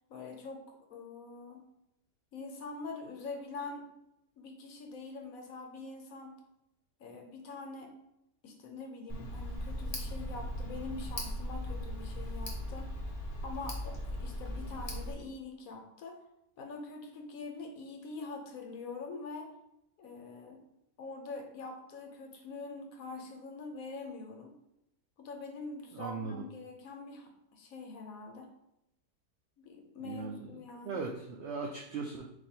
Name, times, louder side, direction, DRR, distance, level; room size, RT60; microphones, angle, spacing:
voice 1, 0.1-0.6 0.9-1.7 2.3-3.9 4.4-6.4 7.0-7.9 8.4-13.0 13.4-16.2 16.6-19.5 20.0-20.6 21.0-24.5 25.2-28.5 29.6-31.0, left 3 dB, 65° left, 3 dB, 1.1 m, -44 dB
Tick, 9.1-15.1, left 1 dB, 35° left, 0.6 m, -38 dB
voice 2, 25.9-26.4 30.0-32.3, right 4 dB, 85° right, 1 dB, 0.6 m, -39 dB
4.2 x 2.6 x 4.3 m, 0.84 s
omnidirectional pair, 1.7 m